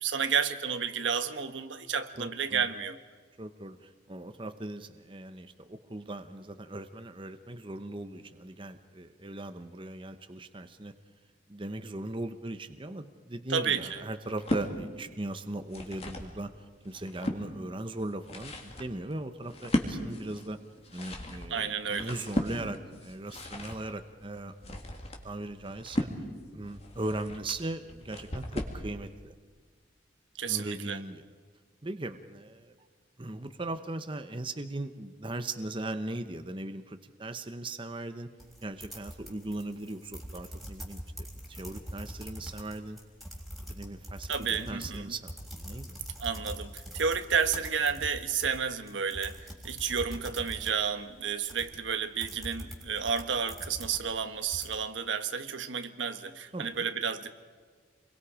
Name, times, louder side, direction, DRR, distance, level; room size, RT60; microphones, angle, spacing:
voice 1, 0.0-3.0 13.5-14.0 21.5-22.1 30.4-31.0 44.3-45.1 46.2-57.3, right 6 dB, 80° right, 9 dB, 1.3 m, -31 dB
voice 2, 2.2-2.7 3.4-10.9 11.5-16.5 16.8-20.6 20.9-24.8 25.2-26.1 26.5-29.3 30.5-31.2 31.8-32.9 33.2-38.3 38.6-41.0 41.5-43.0 43.7-46.0 56.5-56.8, right 2 dB, 25° right, 8 dB, 0.9 m, -39 dB
sound 1, 14.2-14.7 15.5-16.3 16.8-17.4 18.0-28.9, left 1 dB, 35° left, 2.4 m, -36 dB
sound 2, 38.4-54.8, equal, ahead, 3.6 m, -43 dB
28.5 x 22.5 x 5.0 m, 1.6 s
head